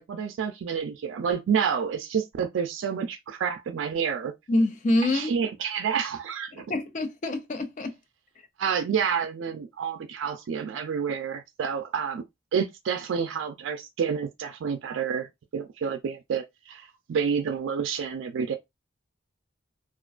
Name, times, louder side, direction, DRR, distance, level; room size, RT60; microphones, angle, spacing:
voice 1, 0.0-4.3 5.1-6.7 8.6-12.2 12.5-15.3 15.5-18.6, right 7 dB, 90° right, 0.3 m, -29 dB
voice 2, 4.5-5.4 6.5-8.0, left 1 dB, 40° left, 0.4 m, -26 dB
2.4 x 2.2 x 2.4 m
head